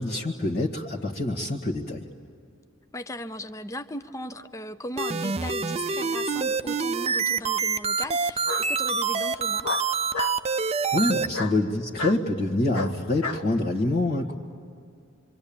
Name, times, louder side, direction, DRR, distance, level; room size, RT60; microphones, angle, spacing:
voice 1, 0.0-2.1 10.9-14.3, left 2 dB, 50° left, -3 dB, 1.7 m, -26 dB
voice 2, 2.9-9.7, left 1 dB, 15° left, 10 dB, 0.6 m, -37 dB
sound 1, 5.0-11.3, right 5 dB, 30° right, 0.6 m, -26 dB
Bark, 6.3-6.9 8.4-8.7 9.6-10.4 11.3-11.6 12.0-12.2 12.7-13.4, left 3 dB, 80° left, 1.3 m, -32 dB
26.5 x 24.5 x 8.7 m, 2.3 s
head